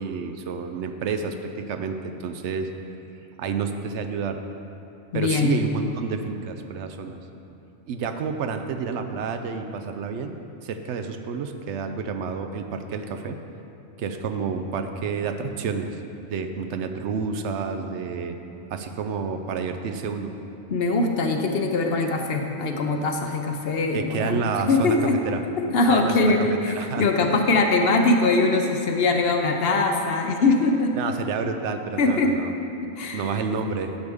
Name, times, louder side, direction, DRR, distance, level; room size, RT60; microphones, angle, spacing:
voice 1, 0.0-2.7 3.4-4.4 5.1-7.2 7.9-10.4 10.6-13.4 14.0-16.0 16.3-18.4 18.7-20.3 23.9-25.4 25.9-27.4 30.9-32.5 33.1-33.9, right 5 dB, 75° right, 6 dB, 0.9 m, -29 dB
voice 2, 5.1-5.6 20.7-25.2 25.6-30.9 32.0-32.3 33.0-33.3, left 3 dB, 60° left, 3 dB, 0.8 m, -22 dB
10.0 x 6.7 x 3.5 m, 2.9 s
omnidirectional pair, 1.2 m